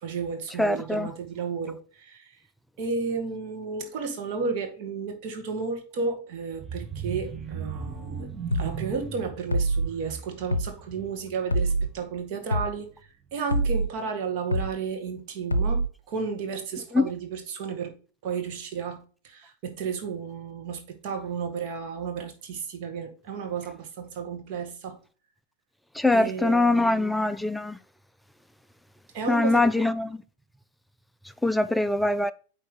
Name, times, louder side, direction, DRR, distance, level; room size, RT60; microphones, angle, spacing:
voice 1, 0.0-2.4 2.8-8.3 8.5-12.9 13.3-17.9 18.2-25.0 26.1-27.1 29.1-29.8, right 5 dB, 45° right, 1.8 m, -33 dB
voice 2, 0.6-1.1 16.9-17.1 25.9-27.8 29.3-30.2 31.4-32.3, left 2 dB, 5° left, 0.4 m, -23 dB
sound 1, 6.5-12.3 12.7-12.9 13.3-13.4, right 6 dB, 15° right, 0.9 m, -38 dB
sound 2, 8.5-8.7 9.5-9.9 10.5-10.7 11.5-11.9 12.5-12.7 13.5-13.9 14.5-14.7 15.5-15.9, right 1 dB, 80° left, 0.5 m, -24 dB
9.1 x 3.3 x 3.8 m
figure-of-eight pair, 90°, 0 cm